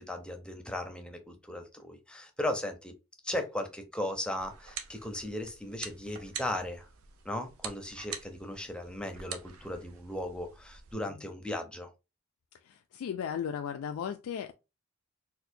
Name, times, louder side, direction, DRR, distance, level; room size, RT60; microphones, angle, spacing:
voice 1, 0.0-2.9 3.2-6.9 7.2-11.9, left 1 dB, 5° left, 0.5 m, -37 dB
sound 1, 4.4-10.9, right 7 dB, 80° right, 0.5 m, -46 dB
voice 2, 12.5-14.5, left 8 dB, 90° left, 0.3 m, -36 dB
4.2 x 2.1 x 2.6 m
head